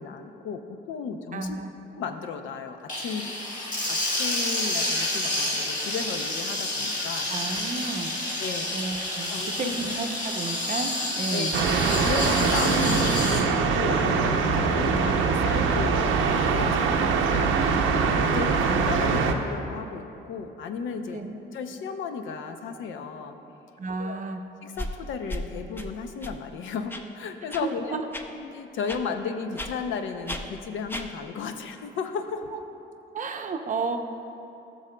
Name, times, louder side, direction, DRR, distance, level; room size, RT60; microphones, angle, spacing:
voice 1, 0.0-1.6 1.9-3.3 3.9-7.3 8.4-8.7 9.3-9.8 11.3-11.5 12.0-17.5 18.2-21.2 21.5-23.4 24.0-24.2 24.6-28.0 28.3-32.5, left 5 dB, 75° left, 6 dB, 0.6 m, -34 dB
voice 2, 1.3-1.7 7.3-8.1 8.7-9.3 9.6-11.5 17.0-17.8 21.1-21.3 23.8-24.4 27.5-28.0 33.1-34.0, right 4 dB, 40° right, 6 dB, 0.6 m, -32 dB
sound 1, 2.9-13.4, left 1 dB, 40° left, 1.6 m, -29 dB
sound 2, 11.5-19.3, right 5 dB, 85° right, 0.6 m, -23 dB
sound 3, 24.8-24.9 25.3-25.4 25.8-25.9 26.2-26.3 26.9-27.0 27.5-27.6 28.1-28.2 28.9-29.0 29.6-29.7 30.3-30.4 30.9-31.0, equal, 10° left, 0.5 m, -33 dB
14.0 x 6.2 x 2.2 m, 2.9 s
cardioid pair, 90°, 20 cm